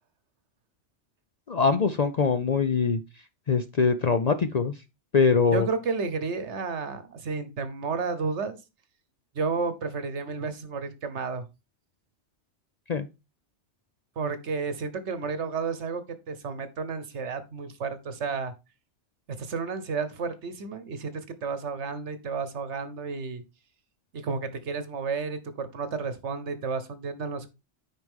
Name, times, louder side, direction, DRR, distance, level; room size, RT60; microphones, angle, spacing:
voice 1, 1.5-3.0 3.5-4.7 5.1-5.7 12.9-13.1, left 5 dB, 50° left, 0.5 m, -23 dB
voice 2, 5.5-8.6 9.3-11.5 14.2-18.5 19.3-23.4 24.1-27.5, right 4 dB, 75° right, 1.3 m, -32 dB
9.4 x 5.0 x 3.5 m
omnidirectional pair, 1.2 m